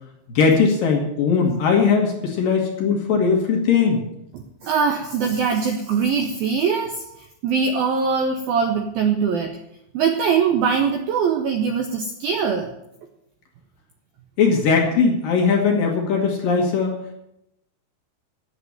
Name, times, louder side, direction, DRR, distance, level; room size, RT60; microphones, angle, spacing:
voice 1, 0.3-4.0 14.4-17.0, left 5 dB, 60° left, 1 dB, 2.8 m, -19 dB
voice 2, 4.3-9.6 9.9-12.7, right 6 dB, 80° right, 4 dB, 2.2 m, -22 dB
9.7 x 8.0 x 9.2 m, 0.81 s
omnidirectional pair, 5.4 m